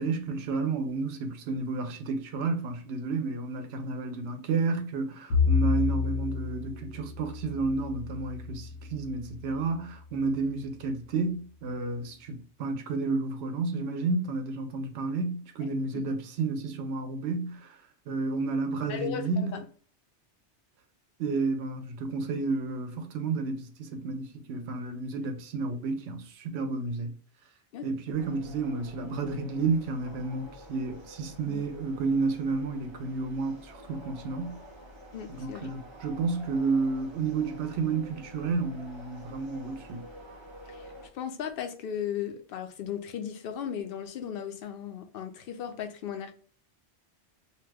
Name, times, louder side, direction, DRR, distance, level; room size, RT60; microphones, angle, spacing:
voice 1, 0.0-17.8 18.1-19.6 21.2-27.1 27.8-34.6 35.3-40.1, right 3 dB, 70° right, 0.8 m, -31 dB
Bowed string instrument, 5.3-9.7, left 5 dB, 90° left, 1.1 m, -30 dB
voice 2, 18.8-19.6 27.7-27.9 31.5-31.7 35.1-35.7 40.7-40.8 41.1-46.3, left 9 dB, 60° left, 0.7 m, -36 dB
sound 1, 28.2-41.1, equal, 30° right, 0.6 m, -49 dB
2.8 x 2.2 x 3.3 m
omnidirectional pair, 1.2 m